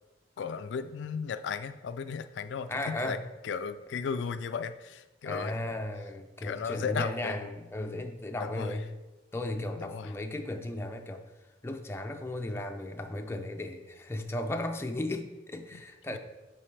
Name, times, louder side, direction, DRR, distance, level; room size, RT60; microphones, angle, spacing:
voice 1, 0.4-3.2 3.4-5.5 6.4-7.5 8.4-8.7 9.8-10.1, left 6 dB, 75° left, 10 dB, 0.3 m, -35 dB
voice 2, 2.7-3.2 5.2-8.9 9.3-11.2 11.6-16.2, left 1 dB, 15° left, 4 dB, 0.5 m, -35 dB
8.8 x 4.5 x 3.3 m, 1.1 s
head